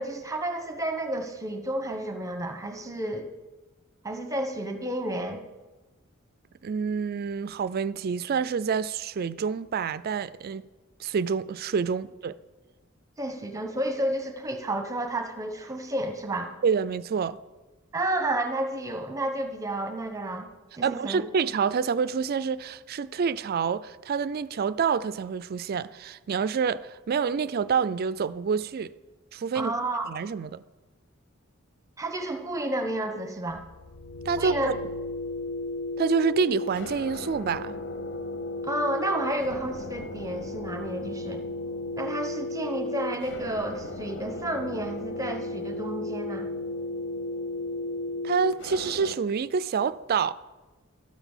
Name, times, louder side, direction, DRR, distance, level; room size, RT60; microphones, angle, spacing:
voice 1, 0.0-3.3 4.0-5.4 13.2-16.6 17.9-20.5 20.8-21.2 29.5-30.1 32.0-33.6 34.4-34.8 38.6-41.4 42.0-46.5, right 1 dB, 15° right, 1.0 m, -31 dB
voice 2, 6.6-10.7 11.0-12.4 16.6-17.4 20.8-28.9 29.3-29.7 30.1-30.6 34.3-34.7 36.0-37.8 48.2-50.3, right 6 dB, 50° right, 0.4 m, -27 dB
sound 1, 33.5-49.1, left 2 dB, 60° left, 0.6 m, -35 dB
13.0 x 6.0 x 7.1 m
head